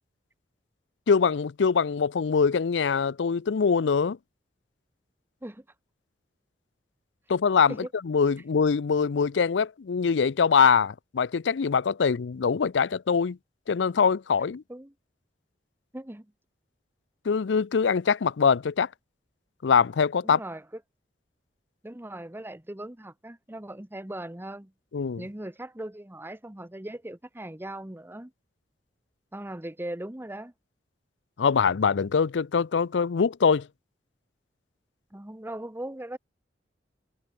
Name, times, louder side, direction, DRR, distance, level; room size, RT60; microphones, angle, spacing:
voice 1, 1.1-4.2 7.3-7.7 8.0-13.4 13.7-14.6 17.3-18.9 19.6-20.4 24.9-25.2 31.4-33.7, left 6 dB, 90° left, 0.5 m, -23 dB
voice 2, 15.9-16.3 20.2-20.6 21.8-24.7 25.2-28.3 29.3-30.5 35.1-36.2, right 1 dB, 15° right, 1.0 m, -39 dB
head